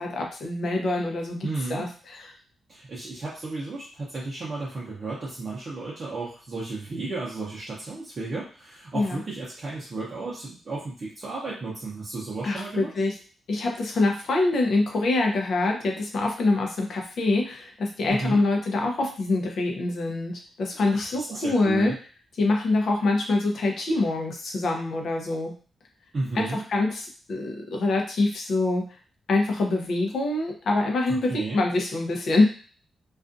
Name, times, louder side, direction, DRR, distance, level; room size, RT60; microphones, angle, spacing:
voice 1, 0.0-2.3 8.9-9.2 12.4-13.1 13.5-21.9 22.4-25.5 26.3-28.9 29.3-32.4, left 2 dB, 60° left, 1 dB, 0.6 m, -25 dB
voice 2, 1.4-1.8 2.7-12.9 18.1-18.4 20.9-21.0 21.3-21.9 26.1-26.6 31.3-31.6, right 3 dB, 35° right, -6 dB, 0.6 m, -33 dB
2.4 x 2.4 x 2.5 m, 0.40 s
wide cardioid pair, 150°, 0 cm